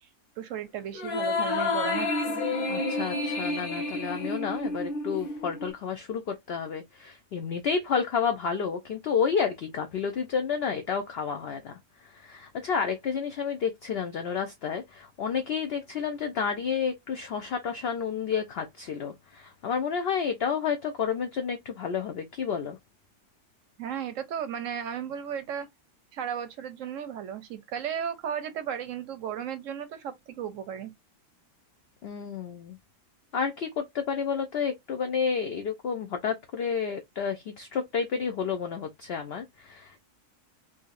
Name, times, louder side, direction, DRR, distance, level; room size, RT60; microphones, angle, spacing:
voice 1, 0.4-2.1 23.8-25.7 26.1-30.9, right 8 dB, 70° right, 0.9 m, -35 dB
sound 1, 1.0-5.7, left 3 dB, 40° left, 0.9 m, -30 dB
voice 2, 2.7-22.8 32.0-32.8 33.3-40.0, left 6 dB, 65° left, 0.6 m, -30 dB
3.8 x 2.7 x 2.4 m
omnidirectional pair, 1.6 m